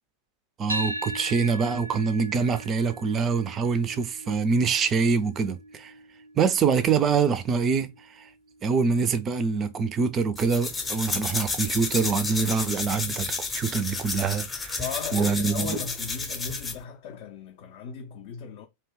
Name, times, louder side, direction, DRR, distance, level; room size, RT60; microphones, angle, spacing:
voice 1, 0.6-5.9 6.4-7.9 8.2-8.3 8.6-13.3 13.5-14.8 15.1-15.8, right 5 dB, 25° right, 0.4 m, -25 dB
sound 1, 0.7-8.9, right 1 dB, 90° right, 0.4 m, -39 dB
sound 2, 10.4-16.8, left 3 dB, 15° left, 0.7 m, -31 dB
voice 2, 14.8-18.7, left 6 dB, 45° left, 0.5 m, -37 dB
2.7 x 2.2 x 3.5 m
figure-of-eight pair, 90°, 0 cm